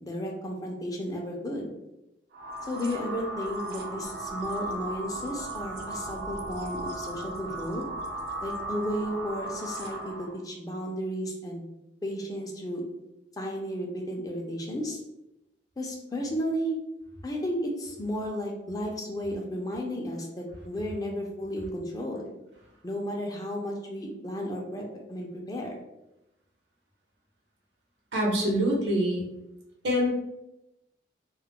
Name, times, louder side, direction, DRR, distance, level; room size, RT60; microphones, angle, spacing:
voice 1, 0.0-1.7 2.7-7.9 8.4-11.6 12.0-12.8 13.4-15.0 15.8-16.8 17.2-22.2 22.8-25.8, equal, 20° left, 0 dB, 0.4 m, -33 dB
sound 1, 2.3-10.4, right 1 dB, 60° right, 0.4 m, -36 dB
voice 2, 28.1-29.3 29.8-30.1, equal, 80° right, -2 dB, 0.9 m, -25 dB
2.3 x 2.0 x 3.5 m, 0.90 s
head